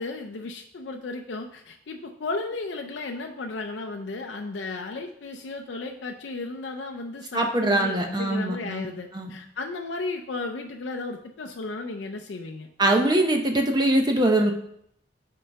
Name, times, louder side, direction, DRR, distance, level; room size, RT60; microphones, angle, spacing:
voice 1, 0.0-12.7, left 3 dB, 65° left, 3 dB, 0.5 m, -34 dB
voice 2, 7.3-8.9 9.1-9.4 12.8-14.5, right 1 dB, 25° right, 3 dB, 0.6 m, -22 dB
5.6 x 4.7 x 5.2 m, 0.71 s
head